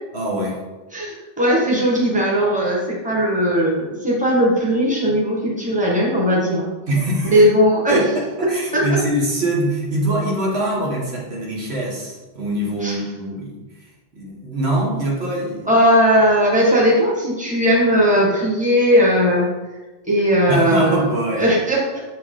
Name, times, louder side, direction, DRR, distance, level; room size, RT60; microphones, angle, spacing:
voice 1, 0.1-0.6 6.9-7.4 7.9-13.6 14.1-15.8 20.5-21.5, right 1 dB, 85° right, -3 dB, 1.8 m, -23 dB
voice 2, 0.9-6.7 7.2-8.1 8.7-9.0 12.8-13.0 15.6-19.5 20.0-21.1 21.4-22.0, equal, 5° right, -4 dB, 1.5 m, -17 dB
6.7 x 4.6 x 3.8 m, 1.2 s
omnidirectional pair, 1.0 m